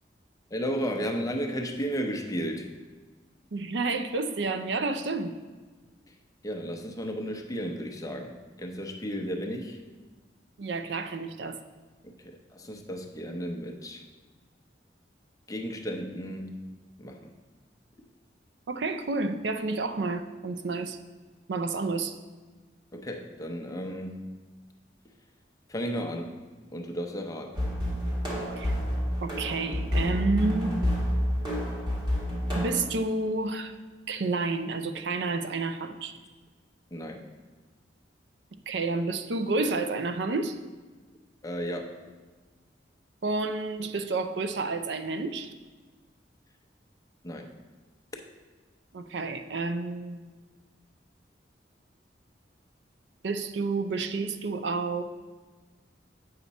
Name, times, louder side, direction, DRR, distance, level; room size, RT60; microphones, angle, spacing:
voice 1, 0.5-2.7 6.4-9.8 12.2-14.0 15.5-16.5 17.0-17.3 22.9-24.2 25.7-26.4 26.7-27.7 36.9-37.2 41.4-42.0 47.2-47.5, equal, 20° left, 3 dB, 0.7 m, -34 dB
voice 2, 3.5-5.3 10.6-11.6 18.7-21.0 21.5-22.2 28.6-28.7 29.2-30.8 32.6-33.8 34.1-36.2 38.7-40.6 43.2-45.5 48.9-50.2 53.2-55.0, right 3 dB, 75° right, 9 dB, 0.5 m, -30 dB
sound 1, 27.5-32.8, equal, 25° right, 1.6 m, -28 dB
8.1 x 5.8 x 4.1 m, 1.3 s
head